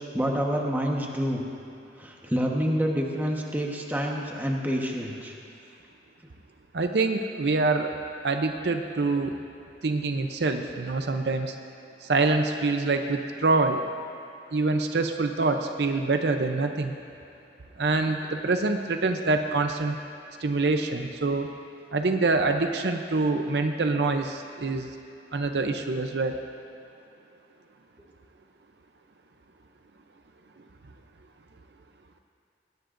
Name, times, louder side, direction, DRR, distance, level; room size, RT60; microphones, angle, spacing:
voice 1, 0.0-1.4 2.0-5.3, equal, 10° right, -1 dB, 1.2 m, -27 dB
voice 2, 6.7-7.9 8.2-9.4 9.8-11.5 12.0-13.8 14.5-16.9 17.8-20.0 20.4-21.5 21.9-24.9 25.3-26.4, right 3 dB, 65° right, 5 dB, 0.6 m, -25 dB
20.5 x 17.0 x 2.6 m, 2.6 s
head